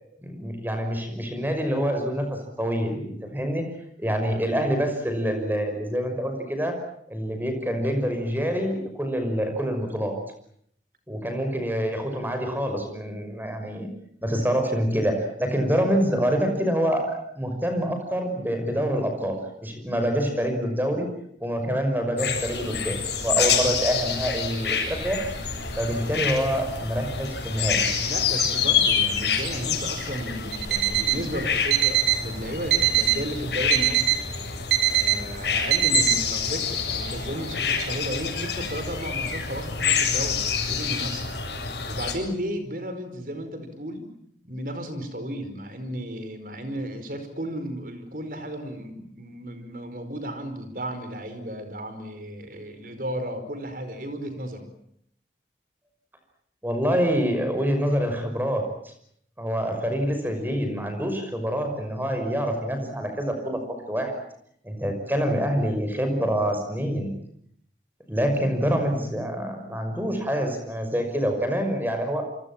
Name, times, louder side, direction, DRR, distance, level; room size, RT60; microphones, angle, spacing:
voice 1, 0.2-3.6 4.0-6.7 7.1-10.2 11.1-13.9 14.2-19.4 19.6-21.1 21.4-25.2 25.8-27.9 56.6-58.9 59.4-63.6 63.9-64.1 64.6-67.1 68.1-72.2, equal, 10° right, 5 dB, 6.0 m, -26 dB
sound 1, 22.2-42.1, left 6 dB, 75° left, 7.8 m, -27 dB
voice 2, 28.0-34.2 34.9-41.2 41.8-44.1 44.4-54.7, equal, 50° right, 9 dB, 5.1 m, -34 dB
Alarm, 30.5-31.2 31.7-32.2 32.7-33.2 33.7-34.2 34.7-35.2 35.7-36.2, right 13 dB, 75° right, 3.6 m, -22 dB
28.0 x 25.5 x 7.6 m, 0.69 s
head